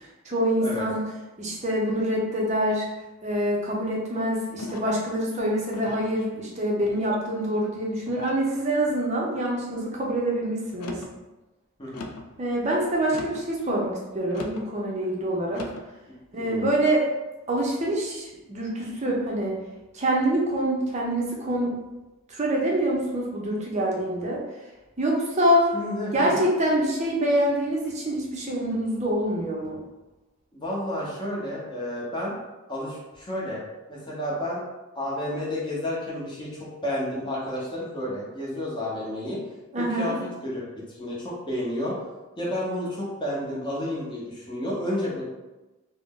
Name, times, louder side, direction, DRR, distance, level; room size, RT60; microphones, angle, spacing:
voice 1, 0.3-1.1 1.4-2.9 3.2-11.0 12.4-15.6 16.3-17.0 17.5-19.6 19.9-21.7 22.3-24.4 25.0-25.7 26.1-29.8 39.7-40.1, right 1 dB, 30° right, -3 dB, 0.5 m, -25 dB
sound 1, 4.6-5.1 5.7-6.2 6.8-7.3 8.1-8.5 9.1-9.5 10.7-11.2 11.9-12.3 13.1-13.5 14.3-14.7 15.5-15.9, left 2 dB, 85° left, 0.4 m, -39 dB
voice 2, 11.8-12.1 16.3-16.7 25.7-26.4 30.5-32.3 32.7-33.6 33.9-34.6 34.9-39.4 39.8-40.2 40.4-42.0 42.4-45.2, left 1 dB, 20° left, -6 dB, 0.7 m, -31 dB
2.5 x 2.1 x 3.6 m, 1.1 s
head